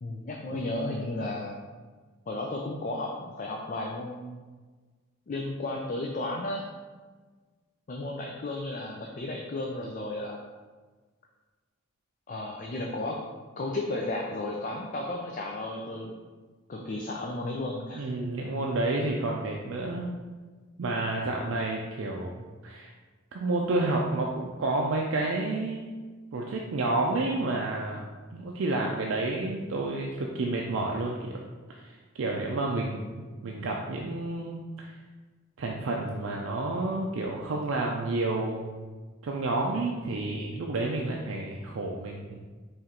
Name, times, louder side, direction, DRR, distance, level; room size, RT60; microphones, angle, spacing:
voice 1, 0.0-1.5 2.3-4.3 5.3-6.6 7.9-10.4 12.3-13.2 13.6-16.2 16.7-18.1 21.4-21.6, left 2 dB, 40° left, 0 dB, 0.4 m, -33 dB
voice 2, 17.9-20.1 20.8-22.9 23.3-25.9 26.3-28.0 28.3-31.4 31.7-34.9 35.6-38.9 39.2-42.4, right 2 dB, 70° right, -1 dB, 0.4 m, -30 dB
4.3 x 3.1 x 3.7 m, 1.4 s
head